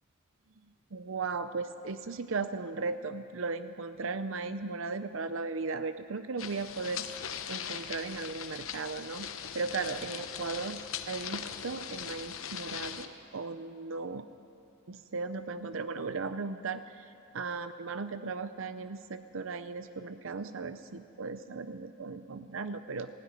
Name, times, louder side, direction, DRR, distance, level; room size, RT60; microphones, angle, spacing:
voice 1, 0.9-9.3 9.5-10.8 11.1-14.3 14.9-23.1, right 4 dB, 65° right, 11 dB, 0.6 m, -37 dB
sound 1, 6.4-13.1, left 8 dB, 70° left, 1.0 m, -40 dB
18.0 x 16.0 x 9.7 m, 2.6 s
head